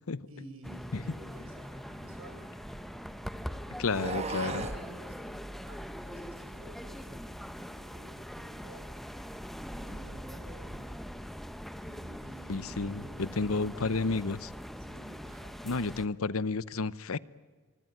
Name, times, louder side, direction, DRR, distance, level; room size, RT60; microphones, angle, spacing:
voice 1, 0.3-2.5 4.4-8.9 9.7-11.1 11.8-14.1 14.8-16.1, right 1 dB, 70° right, 5 dB, 7.0 m, -52 dB
sound 1, 0.6-16.1, equal, ahead, 1.0 m, -42 dB
sound 2, 1.6-3.1 3.8-4.9, right 3 dB, 30° right, 1.8 m, -38 dB
voice 2, 3.8-4.6 12.5-14.5 15.6-17.2, left 3 dB, 70° left, 18 dB, 0.8 m, -31 dB
25.5 x 24.5 x 9.4 m, 1.4 s
head